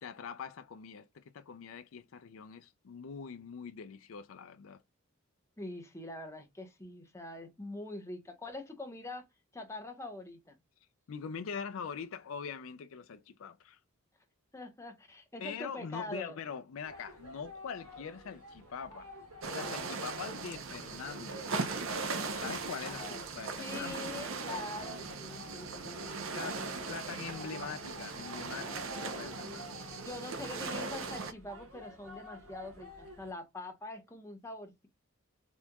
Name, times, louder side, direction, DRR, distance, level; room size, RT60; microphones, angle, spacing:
voice 1, 0.0-4.8 11.1-13.8 15.4-19.1 19.5-21.5 22.3-23.0 23.3-24.6 26.0-29.8, left 6 dB, 70° left, 0.4 m, -43 dB
voice 2, 5.6-9.3 9.5-10.6 14.5-16.4 22.8-23.2 23.6-26.9 30.0-34.9, left 2 dB, 15° left, 1.1 m, -44 dB
sound 1, 16.8-33.3, left 1 dB, 85° right, 2.0 m, -51 dB
sound 2, 19.4-31.3, right 4 dB, 65° right, 0.8 m, -39 dB
4.2 x 3.4 x 2.3 m
head